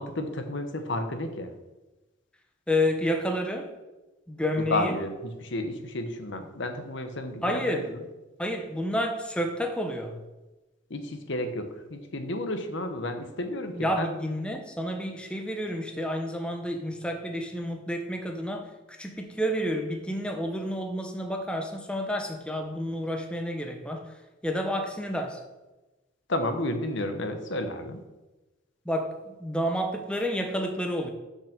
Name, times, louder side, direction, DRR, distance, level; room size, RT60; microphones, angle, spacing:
voice 1, 0.0-1.5 4.7-7.7 10.9-14.1 26.3-28.0, left 1 dB, 65° left, 7 dB, 1.0 m, -32 dB
voice 2, 2.7-3.7 4.3-5.0 7.4-7.9 8.4-10.2 13.8-24.1 24.4-25.4 28.9-31.1, equal, 5° left, 3 dB, 0.8 m, -30 dB
7.0 x 5.5 x 6.5 m, 1.1 s
head